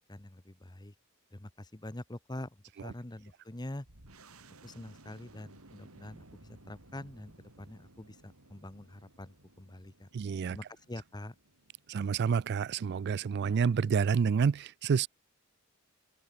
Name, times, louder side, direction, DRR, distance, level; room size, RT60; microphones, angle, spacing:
voice 1, 0.1-0.9 1.3-3.9 4.6-10.1 10.5-11.3, left 1 dB, 20° left, 1.1 m, -45 dB
sound 1, 3.8-13.1, right 2 dB, 85° right, 4.1 m, -58 dB
voice 2, 10.1-10.6 11.9-15.1, right 6 dB, 50° right, 0.3 m, -28 dB
open air
head